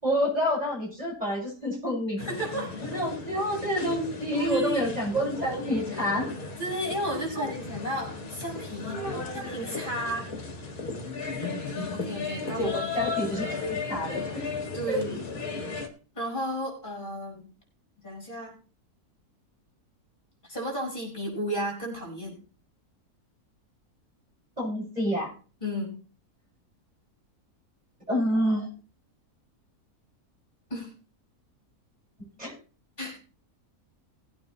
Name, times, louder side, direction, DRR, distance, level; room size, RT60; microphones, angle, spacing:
voice 1, 0.0-2.2 2.8-6.3 7.1-7.5 8.9-9.3 12.2-12.3 12.6-14.4 14.9-15.0 24.6-25.3 28.1-28.7 32.4-32.5, equal, 25° right, -5 dB, 6.4 m, -28 dB
sound 1, 2.2-15.9, left 4 dB, 65° left, 2.2 m, -35 dB
voice 2, 2.2-2.8 3.7-3.9 4.3-4.9 6.6-9.0 9.3-10.3 11.9-12.7 14.7-15.2 16.1-17.5 18.0-18.5 20.4-22.3 25.6-26.0 30.7-30.9 33.0-33.2, right 1 dB, 30° left, -1 dB, 6.1 m, -33 dB
19.5 x 8.8 x 3.3 m, 0.37 s
omnidirectional pair, 1.6 m